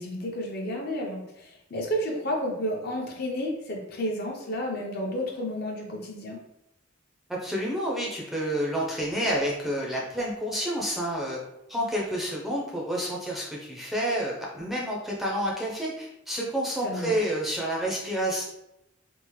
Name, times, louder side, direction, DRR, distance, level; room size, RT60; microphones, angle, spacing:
voice 1, 0.0-6.4 16.8-17.1, equal, 50° left, -1 dB, 0.7 m, -31 dB
voice 2, 7.3-11.4 11.7-18.4, equal, ahead, -3 dB, 0.5 m, -29 dB
3.5 x 2.4 x 3.1 m, 0.84 s
head